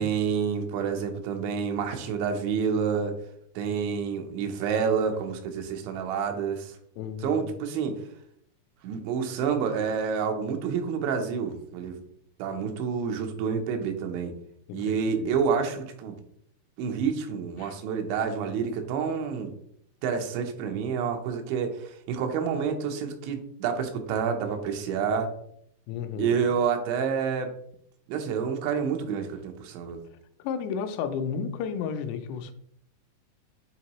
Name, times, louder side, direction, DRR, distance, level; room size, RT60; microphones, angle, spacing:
voice 1, 0.0-3.1 3.6-6.8 7.2-8.0 8.8-12.0 12.4-14.3 14.7-16.1 16.8-19.5 20.0-25.3 26.2-27.5 28.1-30.0, right 6 dB, 90° right, 3.2 m, -28 dB
voice 2, 7.0-7.5 14.7-15.3 17.6-17.7 25.9-26.4 30.4-32.5, left 6 dB, 80° left, 2.7 m, -33 dB
9.0 x 3.7 x 3.0 m
omnidirectional pair, 5.1 m